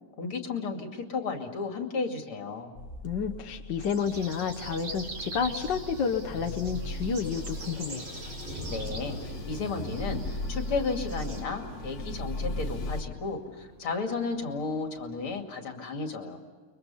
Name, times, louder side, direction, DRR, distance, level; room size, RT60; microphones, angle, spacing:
voice 1, 0.2-2.7 8.7-16.4, left 4 dB, 75° left, 4 dB, 3.3 m, -33 dB
sound 1, 2.7-13.0, left 2 dB, 40° left, 1.3 m, -38 dB
voice 2, 3.0-8.0, left 6 dB, 60° left, 2 dB, 1.7 m, -30 dB
sound 2, 3.8-11.4, right 3 dB, 65° right, 3.6 m, -41 dB
Thunder, 5.8-15.4, equal, 15° left, 6.8 m, -46 dB
29.5 x 23.5 x 5.6 m, 1.5 s
omnidirectional pair, 2.4 m